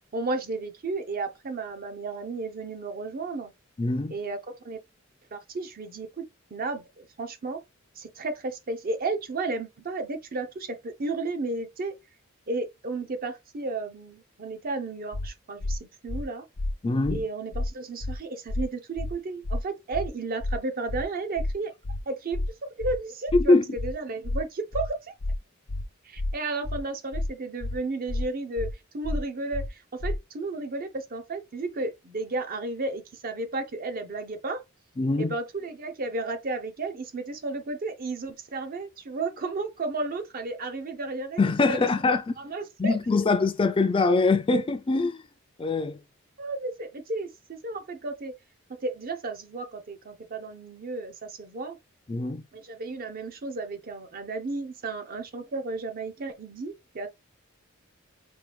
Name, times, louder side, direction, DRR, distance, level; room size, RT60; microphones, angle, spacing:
voice 1, 0.1-3.5 4.1-4.8 5.3-7.6 8.0-11.9 12.5-16.4 17.1-21.7 22.1-25.1 26.0-34.6 35.2-41.9 42.4-42.9 46.4-48.3 48.7-51.8 52.5-57.1, right 3 dB, 45° right, 0.7 m, -33 dB
voice 2, 3.8-4.2 16.8-17.2 23.3-23.6 35.0-35.4 41.4-42.3 42.8-45.2 45.6-46.0 52.1-52.4, left 3 dB, 25° left, 0.4 m, -23 dB
sound 1, 15.1-15.3 15.6-15.8 16.1-16.2 16.6-16.7 17.0-17.2 17.5-17.7 18.0-18.2 18.5-18.6 19.0-19.1 19.4-19.6 19.9-20.1 20.4-20.6 20.9-21.0 21.4-21.5 21.8-22.0 22.3-22.5 22.8-23.0 23.3-23.4 23.8-23.9 24.2-24.4 24.7-24.9 25.2-25.4 25.7-25.8 26.2-26.3 26.6-26.8 27.1-27.3 27.6-27.8 28.1-28.2 28.6-28.7 29.0-29.2 29.5-29.7 30.0-30.2, left 2 dB, 60° left, 0.7 m, -30 dB
4.4 x 2.3 x 3.3 m
head